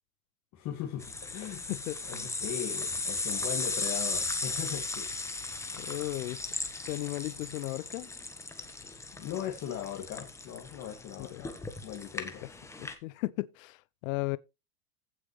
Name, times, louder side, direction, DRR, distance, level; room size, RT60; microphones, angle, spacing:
voice 1, 0.5-1.7 2.0-5.1 9.1-11.5 11.8-12.4, left 10 dB, 40° left, 2.2 m, -39 dB
sound 1, 1.0-12.9, left 3 dB, 5° left, 1.3 m, -36 dB
voice 2, 5.7-6.4 6.9-8.1 11.3-11.4 12.4-12.5 12.8-14.4, left 20 dB, 65° left, 0.7 m, -35 dB
15.5 x 5.9 x 3.2 m
supercardioid pair, 140°, 44 cm